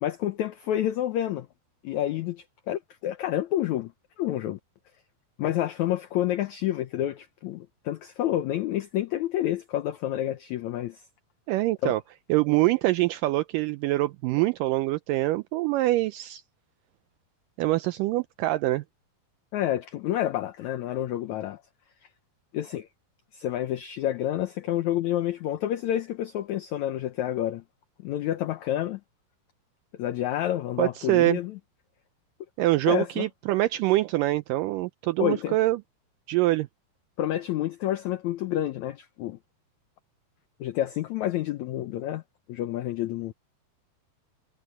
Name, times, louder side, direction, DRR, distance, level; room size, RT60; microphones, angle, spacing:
voice 1, 0.0-1.5 1.8-3.9 4.2-4.6 5.4-11.0 11.8-11.9 19.5-21.6 22.5-22.9 23.3-27.6 28.0-29.0 30.0-31.5 32.9-33.3 35.2-35.5 37.2-39.4 40.6-42.2 42.5-43.3, left 12 dB, 80° left, 1.6 m, -29 dB
voice 2, 11.5-12.0 12.3-16.4 17.6-18.8 30.8-31.4 32.6-35.8 36.3-36.7, right 17 dB, 85° right, 1.9 m, -24 dB
omnidirectional pair, 4.3 m